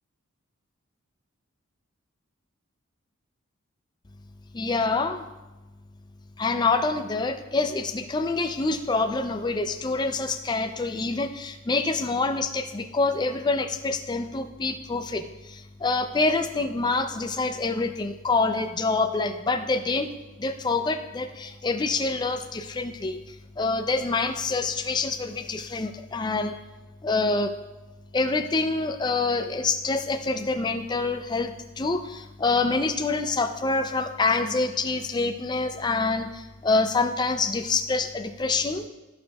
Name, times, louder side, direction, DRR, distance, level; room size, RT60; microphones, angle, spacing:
voice 1, 4.5-5.3 6.4-20.1 20.4-26.6 27.0-27.5 28.1-38.9, left 3 dB, 20° left, 7 dB, 0.4 m, -26 dB
13.5 x 5.2 x 2.3 m, 1.1 s
head